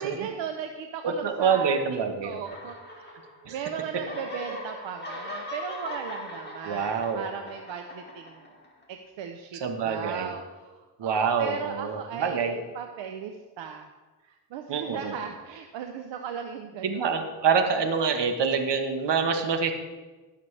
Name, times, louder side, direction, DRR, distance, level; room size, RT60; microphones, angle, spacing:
voice 1, 0.0-1.8 2.2-8.4 8.9-13.9 14.2-17.1, right 7 dB, 85° right, 5 dB, 0.8 m, -37 dB
voice 2, 1.0-2.4 3.5-3.6 6.6-7.3 9.6-10.3 11.0-12.5 14.7-15.1 16.8-19.7, right 6 dB, 70° right, 6 dB, 1.4 m, -26 dB
sound 1, 2.5-3.6 3.9-8.8, left 1 dB, 25° left, 2.3 m, -40 dB
16.5 x 6.7 x 3.3 m, 1.3 s
cardioid pair, 65°, 44 cm